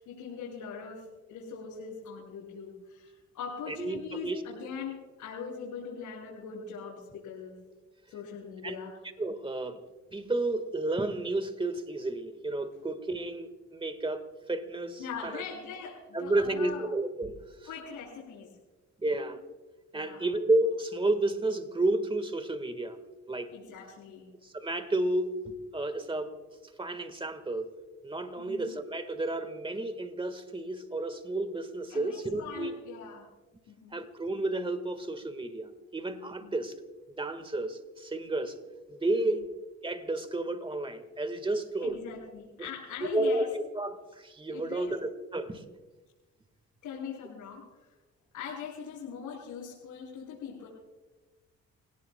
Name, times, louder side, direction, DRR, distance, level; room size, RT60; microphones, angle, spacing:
voice 1, 0.0-7.6 8.1-8.9 15.0-16.9 17.7-18.5 19.9-20.2 23.5-24.3 28.4-28.7 31.9-33.3 33.7-34.0 36.4-36.5 39.2-39.4 41.8-43.5 44.5-45.0 46.8-47.6 48.3-50.7, left 6 dB, 90° left, -6 dB, 6.3 m, -41 dB
voice 2, 3.7-4.4 8.6-8.8 9.2-9.8 10.1-15.4 16.1-17.4 19.0-19.4 19.9-23.0 23.3-23.5 24.4-26.4 26.8-27.7 28.0-32.7 33.9-36.7 37.1-38.5 38.9-39.5 39.8-42.0 42.6-42.7 43.0-45.6, right 2 dB, 15° right, 10 dB, 1.6 m, -31 dB
30.0 x 17.5 x 2.3 m, 1.2 s
cardioid pair, 90°, 30 cm